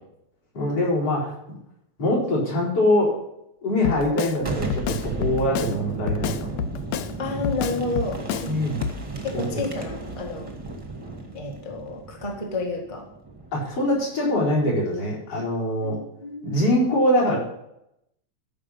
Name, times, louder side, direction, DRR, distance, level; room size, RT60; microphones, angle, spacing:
voice 1, 0.5-1.3 2.0-3.2 3.6-6.5 8.5-8.8 9.3-9.6 13.5-16.0 16.4-17.4, left 1 dB, 50° left, -5 dB, 5.1 m, -23 dB
Drum kit, 3.8-4.4 4.7-5.8 6.1-7.1 7.4-8.5 8.8-9.0, left 8 dB, 75° left, 1.7 m, -28 dB
Boom, 4.4-14.0, right 3 dB, 20° right, 0.8 m, -35 dB
voice 2, 7.2-8.7 9.2-10.5 11.3-13.0 15.8-16.6, left 2 dB, 15° left, 0 dB, 1.3 m, -31 dB
13.5 x 5.8 x 5.6 m, 0.80 s
omnidirectional pair, 3.4 m